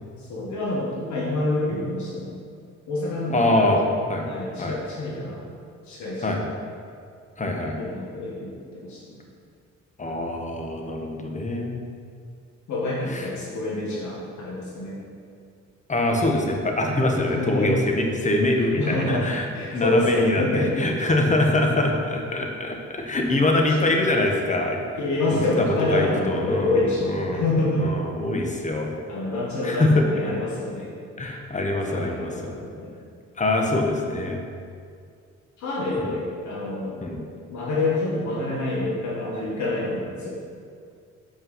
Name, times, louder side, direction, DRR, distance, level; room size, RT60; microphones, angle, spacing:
voice 1, 0.2-2.3 2.9-3.8 4.3-5.5 5.9-6.5 7.8-9.2 12.7-15.0 17.4-17.7 18.8-19.3 19.5-20.7 23.7-23.8 25.0-27.9 29.1-30.9 31.9-33.0 35.6-37.0 37.5-40.3, left 2 dB, 75° left, -5 dB, 1.8 m, -27 dB
voice 2, 3.3-3.8 4.1-4.2 4.6-4.7 6.2-6.4 7.4-7.7 10.0-11.7 13.1-13.2 15.9-24.8 25.6-26.8 27.1-27.4 27.8-28.9 29.6-30.3 31.2-32.6 33.4-34.4 36.0-36.1 37.0-37.2, left 2 dB, 25° left, 2 dB, 1.3 m, -24 dB
7.3 x 5.6 x 5.7 m, 2.3 s
cardioid pair, 85°, 29 cm